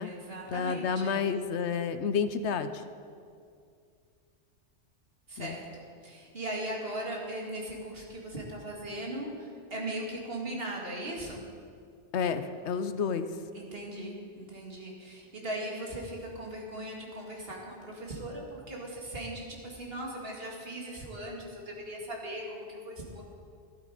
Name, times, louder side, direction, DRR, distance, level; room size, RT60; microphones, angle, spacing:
voice 1, 0.0-1.2 5.3-11.4 13.5-23.2, right 1 dB, 55° right, -1 dB, 2.4 m, -39 dB
voice 2, 0.5-2.8 5.4-5.5 12.1-13.3, left 6 dB, 75° left, 11 dB, 1.0 m, -30 dB
12.5 x 12.5 x 4.9 m, 2.3 s
omnidirectional pair, 1.2 m